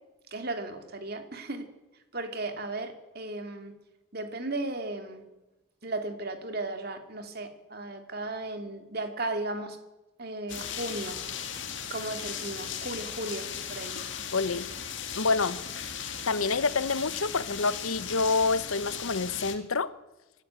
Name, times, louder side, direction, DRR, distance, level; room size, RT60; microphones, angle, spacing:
voice 1, 0.3-1.7 2.1-3.7 4.1-5.2 5.8-9.8 10.2-11.2 11.9-14.0, right 2 dB, 45° right, 6 dB, 2.4 m, -35 dB
sound 1, 10.5-19.6, left 8 dB, 60° left, 2.1 m, -37 dB
voice 2, 14.3-14.7 15.2-15.6 16.3-19.9, left 4 dB, 80° left, 15 dB, 1.1 m, -27 dB
24.5 x 12.0 x 9.0 m, 1.0 s
head